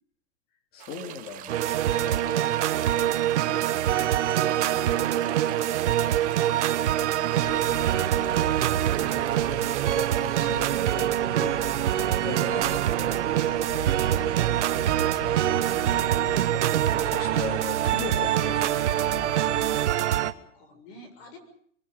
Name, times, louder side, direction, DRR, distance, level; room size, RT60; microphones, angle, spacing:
voice 1, 0.7-2.6 4.7-5.1 9.9-11.6 12.2-12.8 16.3-19.1, left 5 dB, 25° left, 4 dB, 2.7 m, -39 dB
sound 1, 0.8-10.8, right 14 dB, 20° right, 0.9 m, -43 dB
sound 2, 1.5-20.3, right 12 dB, 65° right, 1.4 m, -25 dB
voice 2, 2.1-4.1 4.4-9.2 12.1-14.8 15.1-15.9 19.5-19.8 20.1-21.4, left 3 dB, 45° left, 7 dB, 7.2 m, -49 dB
sound 3, 7.4-19.9, left 4 dB, 80° left, 7.3 m, -41 dB
27.5 x 23.5 x 5.4 m, 0.62 s
hypercardioid pair, 145°, 38 cm